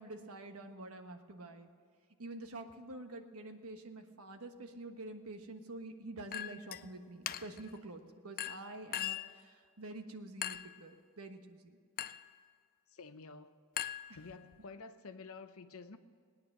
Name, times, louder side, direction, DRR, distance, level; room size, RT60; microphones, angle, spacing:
voice 1, 0.0-1.7 2.2-11.8 14.1-14.2, right 2 dB, 70° right, 6 dB, 1.3 m, -47 dB
Chink clink, 6.3-6.8 7.3-7.7 8.4-9.4 10.4-10.8 12.0-12.3 13.8-14.6, left 11 dB, 40° left, 0.4 m, -40 dB
voice 2, 12.9-13.5 14.1-16.0, left 4 dB, 65° left, 9 dB, 0.9 m, -50 dB
19.5 x 9.6 x 6.6 m, 2.1 s
head